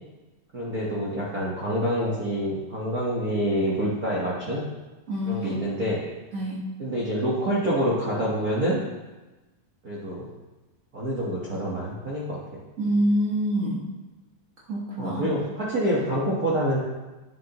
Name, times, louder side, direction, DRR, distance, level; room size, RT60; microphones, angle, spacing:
voice 1, 0.5-4.6 5.2-6.0 6.8-8.8 9.8-10.3 10.9-12.4 15.0-16.8, equal, 60° right, -6 dB, 0.9 m, -27 dB
voice 2, 5.1-5.6 6.3-6.6 12.8-13.8 14.7-15.3, equal, 80° right, -6 dB, 0.6 m, -26 dB
11.0 x 7.7 x 3.0 m, 1.1 s
omnidirectional pair, 3.6 m